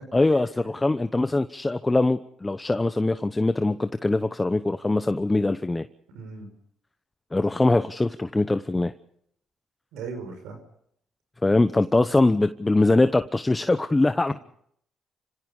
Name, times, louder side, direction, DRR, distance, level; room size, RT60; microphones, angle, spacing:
voice 1, 0.1-5.9 7.3-8.9 11.4-14.3, left 2 dB, 20° left, 11 dB, 0.9 m, -22 dB
voice 2, 6.1-6.5 9.9-10.6 14.3-14.4, right 4 dB, 85° right, 6 dB, 5.7 m, -37 dB
30.0 x 17.0 x 5.4 m, 0.69 s
supercardioid pair, 65°, 0 cm